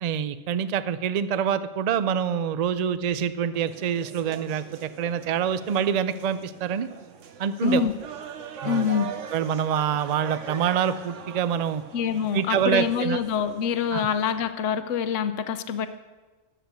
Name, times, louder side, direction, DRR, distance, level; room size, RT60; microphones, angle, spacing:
voice 1, 0.0-6.9 7.4-7.8 8.6-8.9 9.3-11.8 12.3-13.2 13.9-14.1, right 8 dB, 60° right, 13 dB, 0.4 m, -26 dB
sound 1, 3.5-14.3, right 7 dB, 75° right, 1.1 m, -41 dB
voice 2, 7.6-7.9 8.6-9.1 11.9-15.9, left 7 dB, 75° left, 11 dB, 1.0 m, -25 dB
11.0 x 8.0 x 6.8 m, 1.2 s
omnidirectional pair, 1.3 m